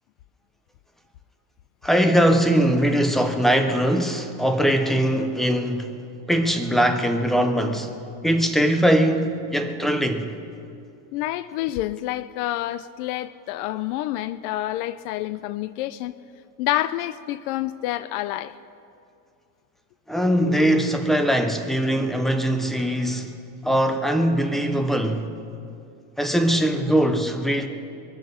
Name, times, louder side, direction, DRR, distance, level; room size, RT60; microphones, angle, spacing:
voice 1, 1.8-5.9 6.3-7.9 8.2-10.3 20.1-23.3 23.6-25.3 26.2-27.7, equal, ahead, 0.4 m, -21 dB
voice 2, 11.1-16.1 16.6-18.5, left 15 dB, 75° left, 0.6 m, -28 dB
23.0 x 7.8 x 6.7 m
cardioid pair, 160°, 45 cm